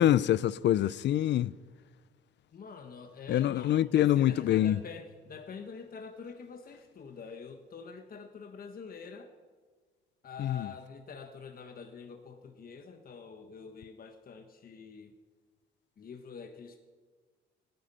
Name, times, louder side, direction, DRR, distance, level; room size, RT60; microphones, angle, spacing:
voice 1, 0.0-1.5 3.3-4.8 10.4-10.6, left 12 dB, 65° left, 0.5 m, -25 dB
voice 2, 2.5-9.3 10.2-15.1 16.0-16.8, left 5 dB, 45° left, 1.3 m, -46 dB
25.5 x 9.7 x 5.6 m
cardioid pair, 90°, 20 cm